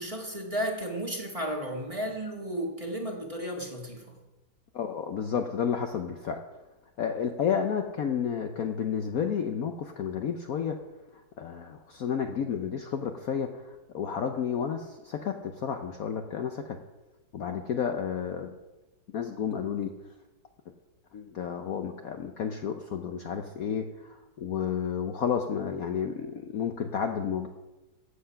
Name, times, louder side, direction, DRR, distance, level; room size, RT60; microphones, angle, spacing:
voice 1, 0.0-4.1, equal, 20° right, 0 dB, 1.6 m, -33 dB
voice 2, 4.7-6.4 7.0-10.8 11.4-16.8 17.3-18.6 19.1-19.9 21.1-27.5, left 7 dB, 60° left, 5 dB, 1.0 m, -31 dB
15.0 x 7.9 x 5.7 m, 1.1 s
omnidirectional pair, 2.1 m